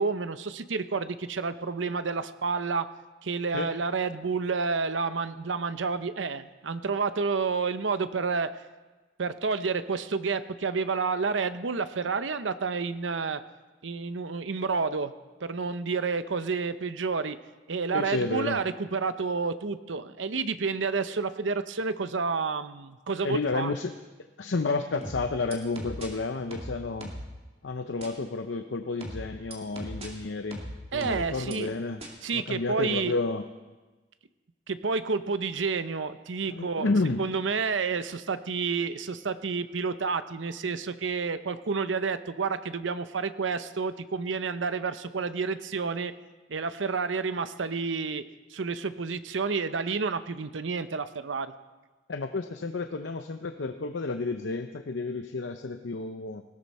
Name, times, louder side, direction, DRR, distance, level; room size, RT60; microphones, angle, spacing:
voice 1, 0.0-2.9 3.2-8.5 9.2-13.4 13.8-15.1 15.4-17.4 17.7-23.7 30.9-31.7 32.2-33.1 34.7-36.9 37.2-46.1 46.5-48.2 48.5-51.5, right 4 dB, 80° right, 12 dB, 0.7 m, -30 dB
voice 2, 17.9-18.6 23.2-23.9 24.4-27.1 27.6-30.6 30.9-32.0 32.3-33.4 36.5-37.2 52.1-56.4, left 3 dB, 75° left, 7 dB, 0.7 m, -31 dB
sound 1, 25.0-26.1 26.5-27.3 28.0-28.1 29.0-30.1 30.5-31.5 32.0-32.1, right 1 dB, 35° right, 2.5 m, -38 dB
19.0 x 16.0 x 4.3 m, 1.2 s
head